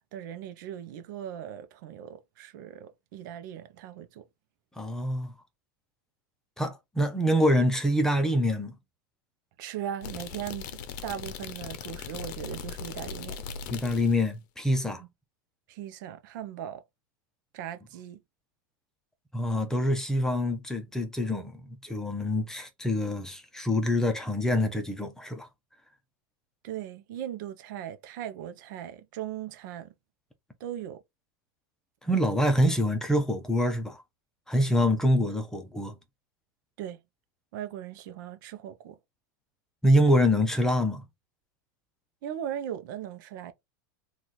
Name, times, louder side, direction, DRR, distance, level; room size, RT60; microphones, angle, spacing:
voice 1, 0.1-4.2 9.6-13.5 15.0-15.1 15.7-16.8 17.5-18.2 26.6-29.9 30.6-31.0 36.8-37.0 37.5-39.0 42.2-43.5, right 10 dB, 65° right, 0.6 m, -38 dB
voice 2, 4.8-5.3 6.6-8.8 13.7-15.0 19.3-25.5 32.0-34.0 34.5-36.0 39.8-41.0, equal, 5° left, 0.7 m, -25 dB
sound 1, 10.0-14.2, left 6 dB, 65° left, 0.6 m, -39 dB
3.0 x 2.4 x 4.0 m
supercardioid pair, 140°, 11 cm